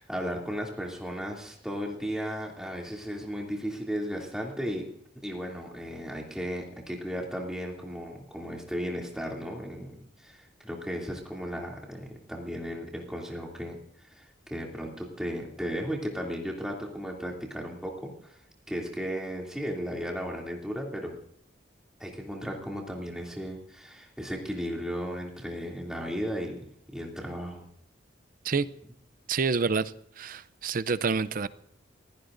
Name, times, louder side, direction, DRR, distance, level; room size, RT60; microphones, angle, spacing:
voice 1, 0.0-4.9 5.2-13.8 14.1-18.4 18.7-21.2 22.0-26.6 26.9-27.7, equal, 5° right, 2.7 m, -35 dB
voice 2, 29.3-31.5, right 4 dB, 50° right, 0.5 m, -28 dB
29.0 x 16.0 x 2.6 m
head